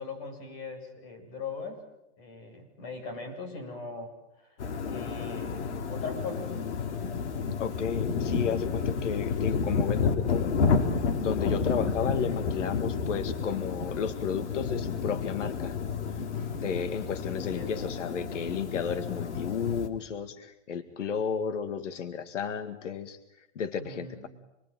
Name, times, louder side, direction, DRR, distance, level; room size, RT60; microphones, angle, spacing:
voice 1, 0.0-1.8 2.2-4.6 4.8-6.5 16.3-17.8 23.7-24.3, left 4 dB, 35° left, 5 dB, 8.0 m, -41 dB
sound 1, 4.6-19.9, left 5 dB, 70° left, 3.6 m, -30 dB
voice 2, 7.6-10.9 11.2-15.8 16.1-16.3 16.5-24.3, left 7 dB, 90° left, 8 dB, 2.1 m, -33 dB
27.5 x 22.0 x 9.2 m, 0.88 s
hypercardioid pair, 165°, 36 cm